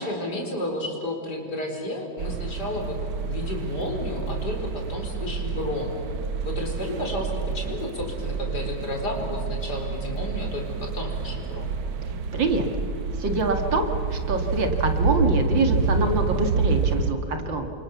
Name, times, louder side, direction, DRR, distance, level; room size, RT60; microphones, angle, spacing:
voice 1, 0.0-5.9 6.4-11.7, left 1 dB, 55° left, 1 dB, 5.0 m, -32 dB
sound 1, 2.2-17.1, right 4 dB, 85° right, 2.0 m, -28 dB
voice 2, 12.3-12.6 13.2-17.7, right 3 dB, 70° right, 5 dB, 2.8 m, -25 dB
29.5 x 25.5 x 7.2 m, 2.5 s
omnidirectional pair, 2.2 m